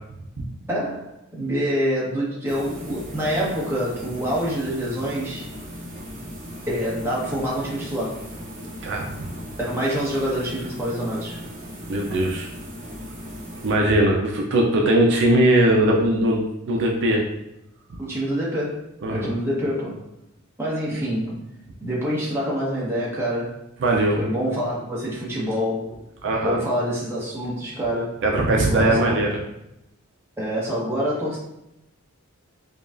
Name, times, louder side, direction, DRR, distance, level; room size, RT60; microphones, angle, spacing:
voice 1, 0.7-5.4 6.7-8.2 9.6-11.4 18.0-18.8 19.1-20.0 20.6-21.4 21.8-23.6 24.2-25.9 26.4-28.2 28.7-29.2 30.4-31.4, equal, 10° right, -6 dB, 1.1 m, -26 dB
sound 1, 2.5-14.1, equal, 40° right, 1.1 m, -38 dB
voice 2, 8.8-9.2 11.9-12.5 13.6-17.2 17.9-18.0 19.0-19.3 23.8-24.2 26.2-26.6 28.2-29.4, right 1 dB, 60° right, 0 dB, 0.4 m, -20 dB
4.9 x 2.3 x 2.5 m, 0.86 s
head